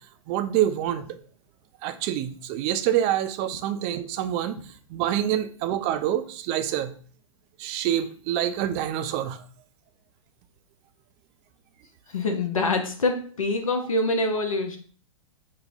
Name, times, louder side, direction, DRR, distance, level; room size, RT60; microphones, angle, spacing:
voice 1, 0.3-1.2 1.8-4.6 4.9-6.9 7.6-9.4, right 11 dB, 35° right, 10 dB, 0.4 m, -26 dB
voice 2, 12.1-14.8, left 2 dB, 85° left, 4 dB, 0.5 m, -25 dB
5.5 x 2.0 x 2.5 m, 0.42 s
figure-of-eight pair, 110°, 17 cm